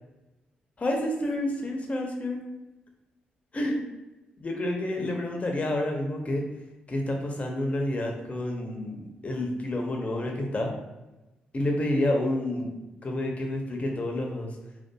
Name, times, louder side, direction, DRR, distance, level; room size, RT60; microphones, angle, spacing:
voice 1, 0.8-2.4 3.5-3.8 4.4-6.4 6.9-10.7 11.5-12.7 13.0-14.5, left 1 dB, 35° left, 1 dB, 0.6 m, -29 dB
2.6 x 2.3 x 2.3 m, 1.0 s
supercardioid pair, 55°, 4 cm